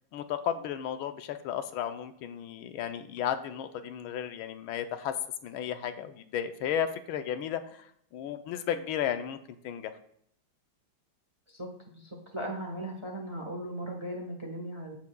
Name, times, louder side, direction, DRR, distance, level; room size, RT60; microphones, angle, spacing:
voice 1, 0.1-9.4 9.6-9.9, left 9 dB, 85° left, 10 dB, 1.5 m, -34 dB
voice 2, 11.5-15.0, right 1 dB, 20° right, 1 dB, 0.9 m, -38 dB
14.5 x 5.9 x 2.3 m, 0.65 s
omnidirectional pair, 2.3 m